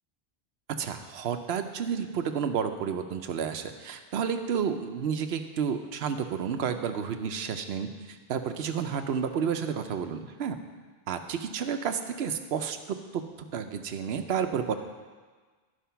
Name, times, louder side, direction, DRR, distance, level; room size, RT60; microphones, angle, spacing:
voice 1, 0.8-10.6 11.1-13.2 13.5-14.7, right 7 dB, 85° right, 8 dB, 0.9 m, -31 dB
12.0 x 5.0 x 5.7 m, 1.4 s
omnidirectional pair, 1.0 m